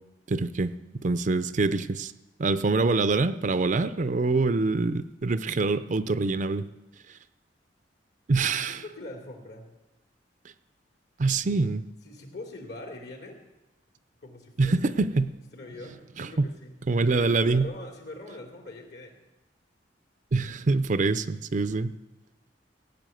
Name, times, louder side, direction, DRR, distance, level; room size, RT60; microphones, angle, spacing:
voice 1, 0.3-0.7 1.0-2.1 2.4-6.6 8.3-8.8 11.2-11.8 14.6-15.3 16.2-16.5 16.9-17.7 20.3-21.9, right 3 dB, 45° right, 12 dB, 0.5 m, -25 dB
voice 2, 8.5-9.7 12.0-13.4 14.2-16.8 17.1-19.2, left 2 dB, 65° left, 1 dB, 3.1 m, -43 dB
17.0 x 7.0 x 9.1 m, 1.0 s
head